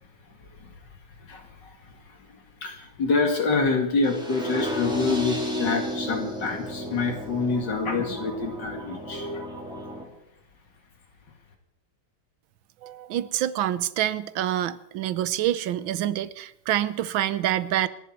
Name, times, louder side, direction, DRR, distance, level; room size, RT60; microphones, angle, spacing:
voice 1, 2.6-9.5, left 4 dB, 65° left, 4 dB, 3.0 m, -26 dB
sound 1, 4.0-10.0, equal, ahead, 2.9 m, -33 dB
voice 2, 12.8-17.9, right 12 dB, 90° right, 16 dB, 1.6 m, -26 dB
27.5 x 11.0 x 4.5 m, 0.75 s
omnidirectional pair, 2.1 m